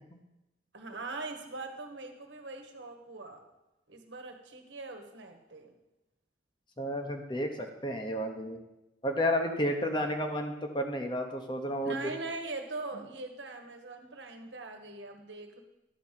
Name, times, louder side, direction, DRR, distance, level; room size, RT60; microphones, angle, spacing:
voice 1, 0.7-3.4 3.9-5.7 9.9-10.2 11.8-15.6, right 3 dB, 75° right, 5 dB, 1.4 m, -41 dB
voice 2, 6.8-7.5 7.8-8.6 9.0-12.0, equal, 25° left, 4 dB, 1.0 m, -31 dB
11.5 x 5.2 x 7.5 m, 0.96 s
head